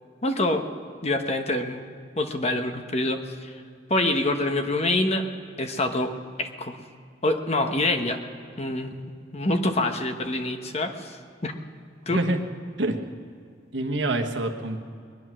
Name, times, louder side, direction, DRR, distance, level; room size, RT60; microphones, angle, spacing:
voice 1, 0.2-0.6 1.0-1.8 2.2-3.5 3.9-5.2 5.6-6.1 6.4-6.8 7.2-8.2 8.6-9.0 9.3-11.2 11.4-11.6 12.1-12.2, left 2 dB, 35° left, 6 dB, 1.0 m, -25 dB
voice 2, 12.1-12.4 12.8-13.0 13.7-14.8, right 2 dB, 80° right, 4 dB, 1.3 m, -26 dB
20.5 x 11.0 x 6.2 m, 2.3 s
head